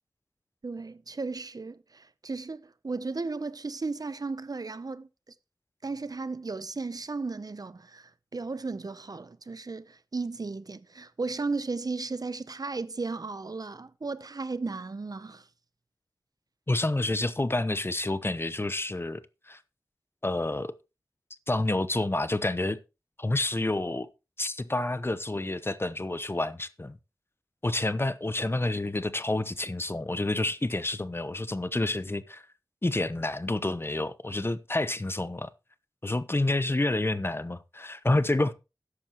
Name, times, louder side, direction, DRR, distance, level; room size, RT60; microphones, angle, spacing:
voice 1, 0.6-5.1 5.8-15.4, right 3 dB, 55° right, 0.7 m, -35 dB
voice 2, 16.7-19.2 19.5-19.6 20.2-20.7 21.5-22.8 23.2-24.1 24.4-27.0 27.6-32.4 32.8-35.5 36.0-38.5, left 2 dB, 30° left, 0.9 m, -29 dB
13.0 x 9.7 x 3.0 m
wide cardioid pair, 60°, 8 cm